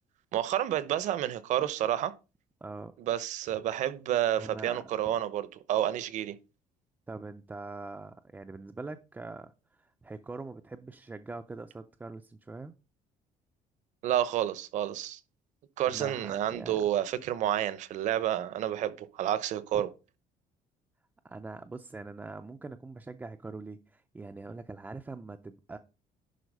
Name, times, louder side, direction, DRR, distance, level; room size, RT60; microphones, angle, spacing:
voice 1, 0.3-2.1 3.0-6.4 14.0-15.2 15.8-19.9, right 11 dB, 55° right, 0.8 m, -30 dB
voice 2, 2.6-2.9 4.4-5.2 7.1-12.7 15.8-16.8 19.7-19.9 21.2-25.8, right 3 dB, 10° right, 0.4 m, -43 dB
11.0 x 4.2 x 5.3 m
cardioid pair, 165°, 14 cm